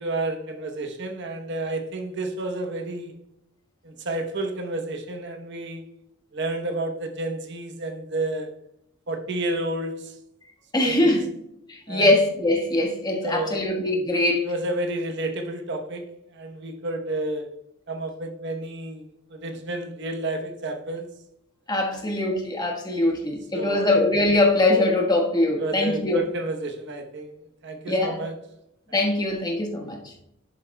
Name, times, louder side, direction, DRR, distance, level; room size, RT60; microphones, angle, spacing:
voice 1, 0.0-3.2 3.8-5.9 6.3-8.6 9.1-10.2 10.8-11.3 11.9-12.1 13.2-13.7 14.4-17.5 17.9-21.1 21.8-22.0 23.5-23.9 25.6-27.3 27.6-28.3, right 2 dB, 60° right, 1.0 m, -30 dB
voice 2, 10.7-11.2 11.7-14.5 21.7-26.2 27.9-28.2 28.9-30.1, left 2 dB, 20° left, 1.4 m, -22 dB
11.5 x 7.3 x 2.3 m
head